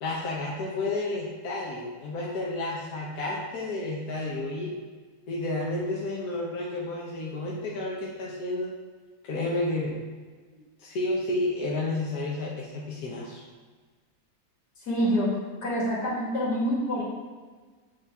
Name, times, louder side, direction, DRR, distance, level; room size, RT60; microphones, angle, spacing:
voice 1, 0.0-4.7 5.3-8.7 9.2-10.0 10.8-13.4, left 2 dB, 70° left, -4 dB, 1.4 m, -31 dB
voice 2, 14.8-15.4 15.6-17.0, equal, 90° left, -6 dB, 2.5 m, -26 dB
8.3 x 4.2 x 3.5 m, 1.4 s
omnidirectional pair, 1.7 m